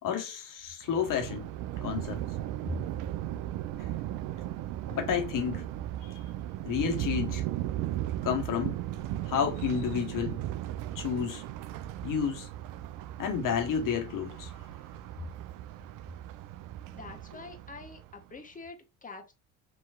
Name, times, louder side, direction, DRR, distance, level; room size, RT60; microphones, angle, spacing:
voice 1, 0.0-1.5 1.8-2.2 4.9-5.7 6.1-6.2 6.6-7.4 8.2-8.8 9.2-10.4 10.9-11.4 12.0-12.5 13.2-14.6, left 7 dB, 50° left, 1.4 m, -30 dB
Thunder, 0.8-18.2, right 13 dB, 50° right, 0.5 m, -37 dB
voice 2, 16.9-19.3, left 4 dB, 20° left, 1.4 m, -46 dB
5.6 x 3.0 x 2.4 m
hypercardioid pair, 55°, 41 cm